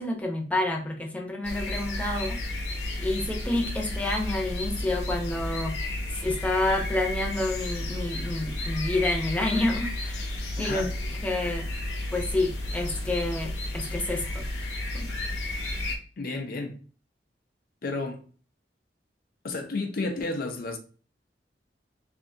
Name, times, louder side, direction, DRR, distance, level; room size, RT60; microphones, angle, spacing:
voice 1, 0.0-2.4 3.0-5.7 6.1-10.2 10.6-10.9 11.2-11.7 12.1-14.4 14.9-15.1, left 2 dB, 10° left, 0.7 m, -29 dB
sound 1, 1.4-16.0, left 1 dB, 75° left, 0.9 m, -32 dB
voice 2, 16.2-16.8 17.8-18.2 19.4-20.8, left 3 dB, 55° left, 0.6 m, -31 dB
3.4 x 2.7 x 2.6 m
head